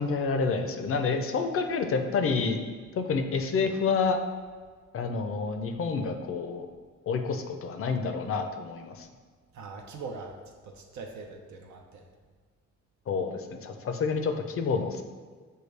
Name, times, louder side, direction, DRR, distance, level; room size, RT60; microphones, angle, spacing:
voice 1, 0.0-2.6 3.0-4.2 4.9-6.7 7.1-9.1 13.1-15.0, left 5 dB, 45° left, 6 dB, 0.5 m, -28 dB
voice 2, 9.5-10.3 10.6-12.0, right 4 dB, 65° right, 2 dB, 0.5 m, -41 dB
6.4 x 2.3 x 3.2 m, 1.5 s
cardioid pair, 90°, 30 cm